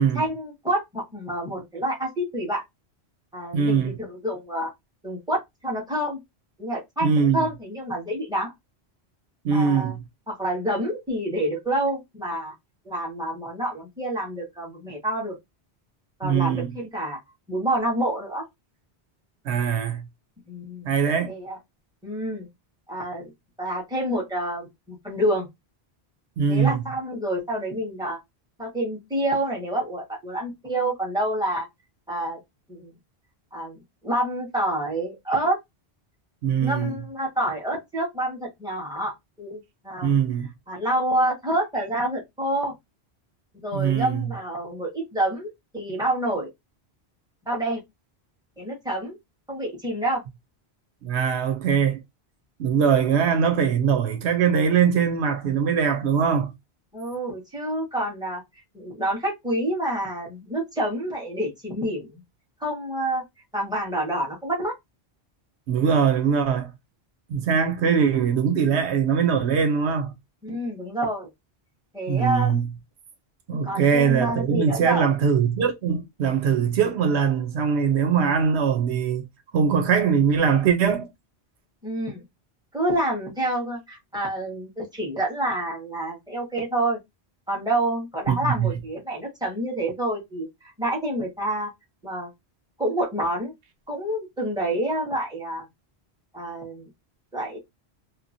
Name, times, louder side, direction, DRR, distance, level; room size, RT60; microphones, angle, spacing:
voice 1, 0.1-2.6 3.3-4.7 5.0-6.2 6.6-8.5 9.5-10.0 10.3-12.5 12.8-15.3 16.2-17.2 17.5-18.4 20.5-20.9 21.3-21.6 22.0-22.5 22.9-23.3 23.6-25.5 26.5-28.2 28.6-31.7 32.1-32.4 32.7-32.8 33.5-35.6 36.6-40.1 40.7-42.7 43.6-46.5 47.5-47.8 48.6-49.2 49.5-50.2 56.9-58.4 58.7-62.2 62.6-63.2 63.5-64.7 70.4-71.3 71.9-72.7 73.5-75.1 81.8-82.2 82.7-87.0 87.5-90.5 90.8-91.7 92.0-92.3 92.8-93.5 93.9-95.6 96.3-96.9 97.3-97.6, right 1 dB, 5° right, 1.2 m, -28 dB
voice 2, 3.5-4.0 7.0-7.5 9.4-10.0 16.2-16.7 19.4-20.0 20.8-21.3 26.4-26.8 36.4-36.9 40.0-40.5 43.7-44.3 51.0-52.0 52.6-56.5 65.7-66.7 67.3-70.1 72.1-72.7 73.5-79.3 79.5-81.1 88.3-88.7, right 7 dB, 90° right, 1.0 m, -22 dB
2.9 x 2.3 x 2.6 m
omnidirectional pair, 1.1 m